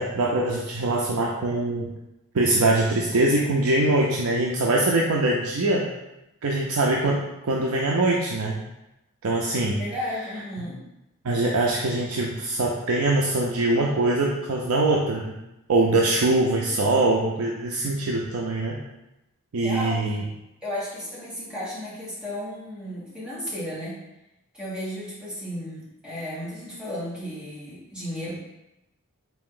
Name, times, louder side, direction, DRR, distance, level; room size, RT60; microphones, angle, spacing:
voice 1, 0.0-1.9 2.3-5.9 6.4-8.6 9.2-9.8 11.2-15.3 15.7-18.8 19.5-20.2, right 2 dB, 65° right, -1 dB, 0.5 m, -23 dB
voice 2, 9.8-10.8 19.6-20.2 20.6-24.0 24.5-28.3, equal, 5° right, -9 dB, 1.4 m, -34 dB
4.1 x 2.7 x 3.7 m, 0.92 s
head